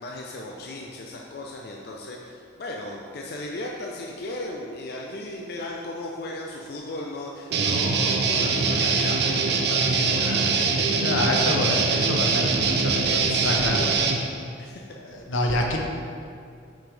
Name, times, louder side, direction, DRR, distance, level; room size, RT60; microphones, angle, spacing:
voice 1, 0.0-11.0 11.4-11.8 13.0-13.7 14.6-14.8 15.5-15.6, left 2 dB, 50° left, -1 dB, 0.4 m, -36 dB
Guitar, 7.5-14.2, right 4 dB, 55° right, 0.5 m, -23 dB
voice 2, 11.0-14.3 15.0-15.8, left 1 dB, 80° left, 1 dB, 0.8 m, -27 dB
5.9 x 5.3 x 3.3 m, 2.4 s
head